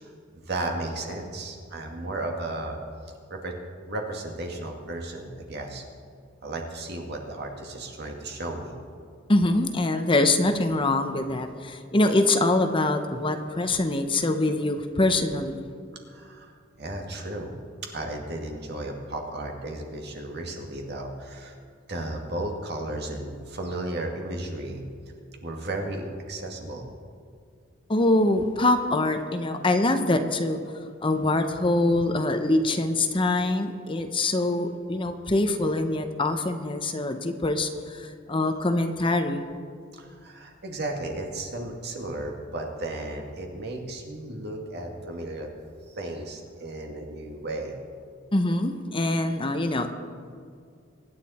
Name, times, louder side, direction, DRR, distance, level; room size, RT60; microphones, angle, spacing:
voice 1, 0.0-2.8 3.3-3.6 3.9-5.8 6.4-8.7 16.1-17.5 17.9-21.6 21.9-24.8 25.4-26.9 39.9-45.5 45.9-47.7, right 2 dB, 55° right, 2 dB, 2.1 m, -34 dB
voice 2, 9.3-15.6 27.9-30.6 31.0-39.4 48.3-49.9, left 2 dB, 25° left, 7 dB, 0.8 m, -24 dB
24.0 x 9.8 x 4.3 m, 2.3 s
head